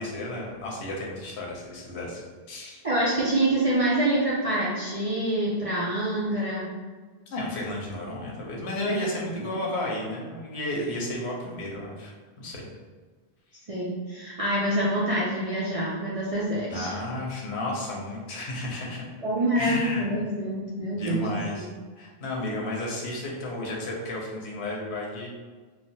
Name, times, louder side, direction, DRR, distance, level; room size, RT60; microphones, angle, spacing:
voice 1, 0.0-2.2 2.5-2.8 7.3-12.7 16.7-19.0 19.6-20.0 20.9-21.7 22.0-25.3, left 1 dB, 80° left, -2 dB, 0.9 m, -33 dB
voice 2, 2.8-6.7 8.9-9.4 13.7-17.0 19.2-21.3 21.5-21.7, right 1 dB, 50° right, -7 dB, 0.4 m, -26 dB
3.1 x 2.0 x 2.7 m, 1.4 s
omnidirectional pair, 1.1 m